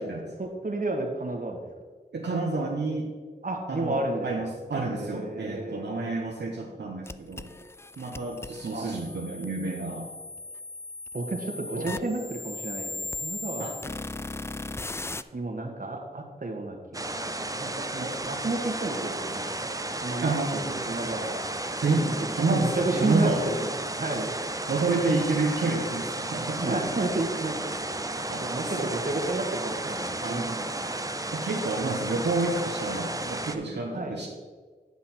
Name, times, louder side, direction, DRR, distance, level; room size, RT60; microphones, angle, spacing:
voice 1, 0.0-1.6 3.4-4.5 4.7-6.1 8.7-8.9 11.1-13.7 15.3-17.1 17.4-19.5 20.0-21.4 21.9-22.3 22.6-24.3 26.6-28.1 28.4-30.7 33.9-34.2, right 2 dB, 50° right, 2 dB, 1.6 m, -32 dB
voice 2, 2.1-3.1 3.7-7.5 8.0-10.1 11.8-11.9 13.6-13.7 20.2-20.8 21.8-23.5 24.7-26.6 28.3-28.4 28.8-28.9 30.2-30.6 31.3-34.3, right 3 dB, 80° right, -1 dB, 1.1 m, -29 dB
sound 1, 7.1-15.2, left 3 dB, 15° left, 0.3 m, -38 dB
sound 2, 16.9-33.6, right 2 dB, 20° right, 0.7 m, -33 dB
9.6 x 5.6 x 4.4 m, 1.5 s
cardioid pair, 45°, 18 cm